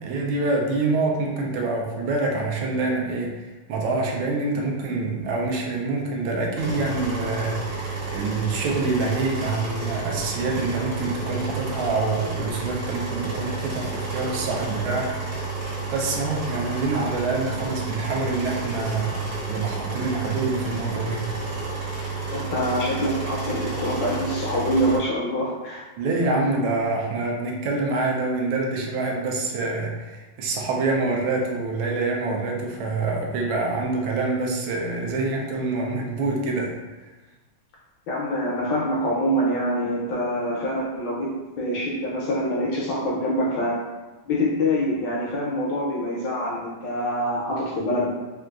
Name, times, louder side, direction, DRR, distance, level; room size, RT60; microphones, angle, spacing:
voice 1, 0.0-15.6 15.9-21.2 26.0-36.8, right 3 dB, 80° right, 0 dB, 1.3 m, -26 dB
sound 1, 6.6-25.0, right 4 dB, 60° right, 0.8 m, -31 dB
voice 2, 22.3-25.8 38.1-43.8 44.3-48.1, equal, 75° left, -4 dB, 1.1 m, -25 dB
3.8 x 2.3 x 2.3 m, 1.2 s
omnidirectional pair, 2.3 m